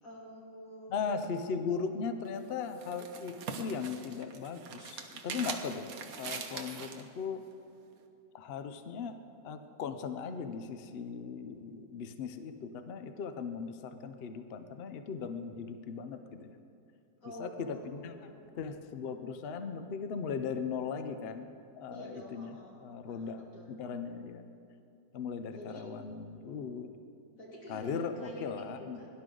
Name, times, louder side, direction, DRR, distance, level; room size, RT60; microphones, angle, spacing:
voice 1, 0.0-1.3 17.2-18.4 21.9-23.8 25.5-25.8 27.4-29.1, equal, 50° left, -4 dB, 3.0 m, -48 dB
voice 2, 0.9-5.9 6.2-7.4 8.3-9.2 9.4-16.5 17.4-21.5 21.8-22.5 22.8-23.4 23.7-24.4 25.1-26.9 27.7-29.0, left 5 dB, 85° left, 8 dB, 0.5 m, -38 dB
sound 1, 2.2-7.1, right 5 dB, 60° right, 1.3 m, -42 dB
17.0 x 11.0 x 3.8 m, 2.6 s
omnidirectional pair, 1.9 m